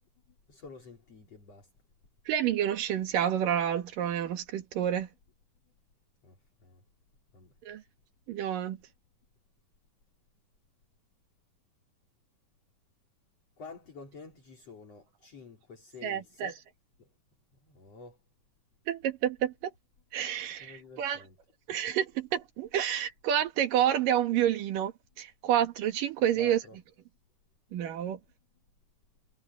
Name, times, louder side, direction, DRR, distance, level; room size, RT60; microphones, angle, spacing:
voice 1, 0.3-1.7 6.2-6.9 7.3-7.5 13.6-16.6 17.0-17.1 17.6-18.2 20.6-21.4 26.4-26.8, left 4 dB, 45° left, 5.5 m, -49 dB
voice 2, 2.3-5.1 7.7-7.8 8.3-8.8 16.0-16.6 18.9-19.7 20.1-21.2 21.7-24.9 25.2-26.6 27.7-28.2, right 10 dB, 75° right, 3.3 m, -29 dB
omnidirectional pair, 4.0 m